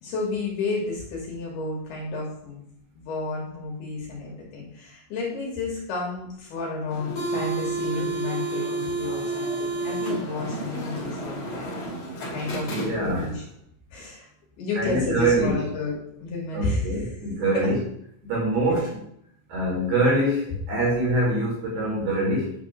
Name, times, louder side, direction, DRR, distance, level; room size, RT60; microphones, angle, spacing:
voice 1, 0.0-2.6 3.0-11.7 12.3-13.4 13.9-14.3 14.6-17.2 17.5-17.7 18.8-18.9, left 3 dB, 65° left, -3 dB, 3.1 m, -31 dB
sound 1, 6.9-13.4, right 2 dB, 45° left, 2.5 m, -30 dB
voice 2, 12.7-13.3 14.8-15.5 16.5-17.8 18.2-19.0 19.5-22.5, right 1 dB, 60° right, -4 dB, 4.0 m, -24 dB
9.6 x 3.6 x 6.1 m, 0.71 s
omnidirectional pair, 5.7 m